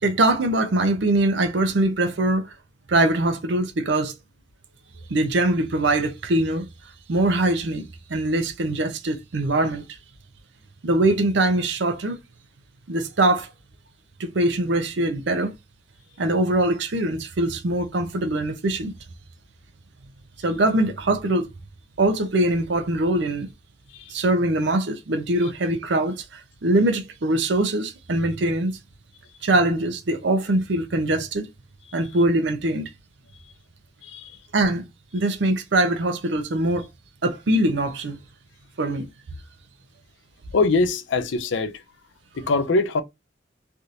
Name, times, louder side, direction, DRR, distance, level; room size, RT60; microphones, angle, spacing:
voice 1, 0.0-2.5 2.9-4.2 5.1-6.7 7.1-7.8 8.1-9.8 10.8-12.2 12.9-13.5 14.2-15.5 16.2-18.9 20.4-21.5 22.0-23.5 24.1-28.7 29.4-31.5 31.9-32.9 34.5-34.8 35.1-36.9 37.2-38.2 38.8-39.1, right 1 dB, 65° right, 0.6 m, -22 dB
voice 2, 40.5-41.7 42.4-43.0, left 3 dB, 70° left, 0.5 m, -22 dB
3.4 x 2.5 x 2.7 m
head